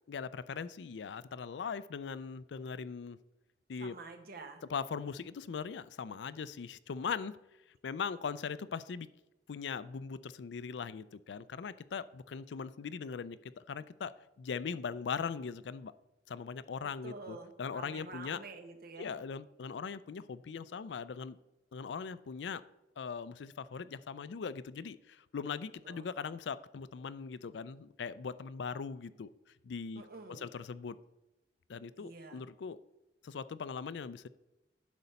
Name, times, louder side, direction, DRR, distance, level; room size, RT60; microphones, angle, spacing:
voice 1, 0.1-3.2 3.7-4.0 4.7-7.4 7.8-9.1 9.5-14.1 14.4-15.9 16.3-18.4 19.0-21.4 21.7-22.6 23.0-29.3 29.6-30.0 30.3-31.0 31.7-32.8 33.2-34.3, left 6 dB, 80° left, 16 dB, 0.4 m, -40 dB
voice 2, 3.8-4.6 16.8-19.2 25.8-26.1 29.9-30.5 32.0-32.4, right 3 dB, 60° right, 5 dB, 1.3 m, -48 dB
10.5 x 4.1 x 6.9 m, 0.99 s
head